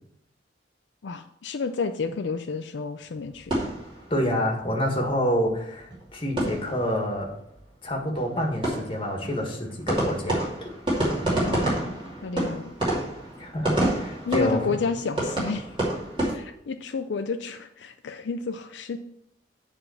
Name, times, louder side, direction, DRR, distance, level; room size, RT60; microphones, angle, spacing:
voice 1, 1.0-3.5 11.3-12.7 14.3-15.8 16.3-19.0, left 4 dB, 70° left, 7 dB, 0.4 m, -31 dB
sound 1, 3.2-4.6 4.9-5.0 5.3-5.4 5.7-7.2 7.4-7.6 7.8-16.3, right 1 dB, 25° right, 2.6 m, -29 dB
voice 2, 4.1-7.3 7.8-10.4 13.4-14.7, equal, 30° left, 1 dB, 1.6 m, -27 dB
8.9 x 3.7 x 6.9 m, 0.77 s
head